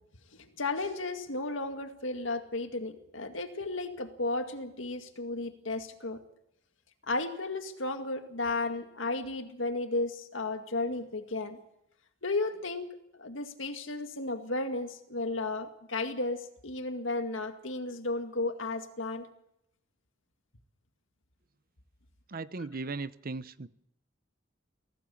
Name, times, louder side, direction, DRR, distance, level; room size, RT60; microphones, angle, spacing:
voice 1, 0.3-6.2 7.1-11.6 12.2-19.3, left 2 dB, 70° left, 2.1 m, -34 dB
voice 2, 22.3-23.7, right 3 dB, 50° right, 0.8 m, -37 dB
24.0 x 17.0 x 7.1 m
head